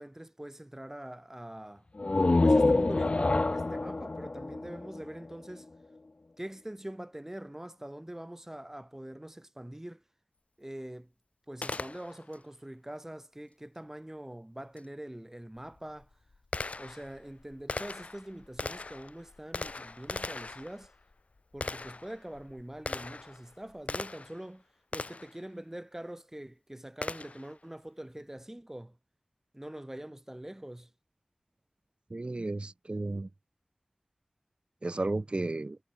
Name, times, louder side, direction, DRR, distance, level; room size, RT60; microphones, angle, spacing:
voice 1, 0.0-1.8 2.4-5.7 6.4-10.0 10.6-11.1 11.5-16.1 16.8-20.9 21.5-24.6 24.9-28.9 29.5-30.9, right 1 dB, 20° right, 3.3 m, -44 dB
sound 1, 2.0-5.6, left 2 dB, 55° left, 0.8 m, -26 dB
Gunshot gunfire, 11.6-12.4 14.8-14.9 15.6-24.4 24.9-25.4 27.0-27.5, left 3 dB, 80° left, 3.8 m, -40 dB
voice 2, 32.1-33.3 34.8-35.8, right 2 dB, 50° right, 1.5 m, -33 dB
wide cardioid pair, 55°, 2 cm